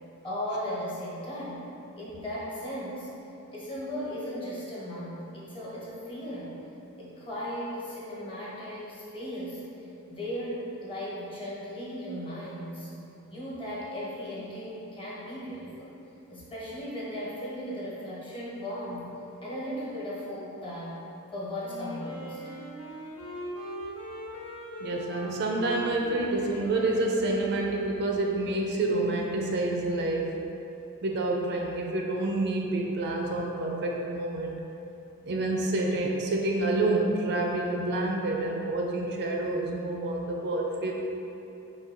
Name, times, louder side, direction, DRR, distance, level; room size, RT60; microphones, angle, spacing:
voice 1, 0.2-1.7 2.0-3.1 3.5-6.5 7.0-9.6 10.1-12.9 13.3-15.9 16.3-19.1 19.4-21.0 21.3-22.4, equal, 25° left, -7 dB, 1.0 m, -36 dB
Wind instrument woodwind instrument, 21.6-28.3, equal, 85° left, 1.1 m, -40 dB
voice 2, 24.8-30.3 31.0-34.5 35.2-40.9, right 2 dB, 50° right, 0 dB, 0.4 m, -28 dB
3.8 x 2.7 x 4.3 m, 2.8 s
head